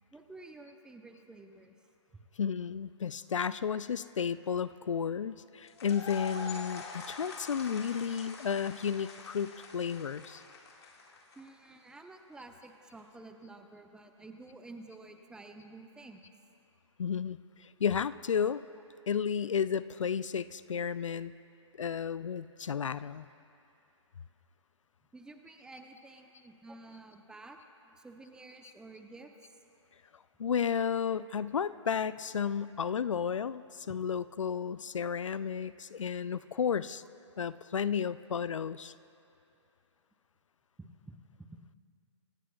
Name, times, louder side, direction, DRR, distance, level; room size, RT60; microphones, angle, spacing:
voice 1, 0.1-1.8 11.4-16.3 25.1-27.6 27.8-29.6 40.8-41.7, right 2 dB, 5° right, 5 dB, 0.7 m, -51 dB
voice 2, 2.4-10.4 17.0-18.6 19.1-21.3 21.8-23.3 30.4-37.0 37.4-38.9, left 7 dB, 75° left, 16 dB, 0.5 m, -32 dB
sound 1, 5.7-11.7, left 4 dB, 55° left, 2.0 m, -45 dB
26.0 x 16.0 x 2.4 m, 2.6 s
hypercardioid pair, 135°, 16 cm